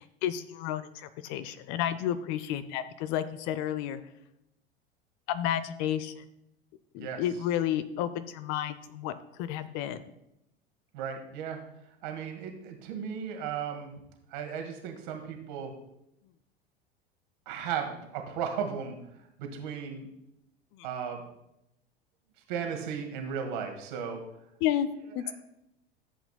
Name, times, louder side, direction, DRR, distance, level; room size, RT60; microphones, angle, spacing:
voice 1, 0.0-4.0 5.3-6.2 6.9-9.1 9.4-10.0 20.7-20.9 24.6-24.9 25.1-25.2, left 11 dB, 40° left, 13 dB, 0.5 m, -31 dB
voice 2, 10.9-11.6 12.0-13.9 14.3-15.7 17.5-19.0 19.4-20.1 20.8-21.2 22.5-24.2 25.3-25.4, right 7 dB, 55° right, 4 dB, 1.8 m, -35 dB
14.0 x 7.8 x 2.2 m, 0.83 s
figure-of-eight pair, 80°, 31 cm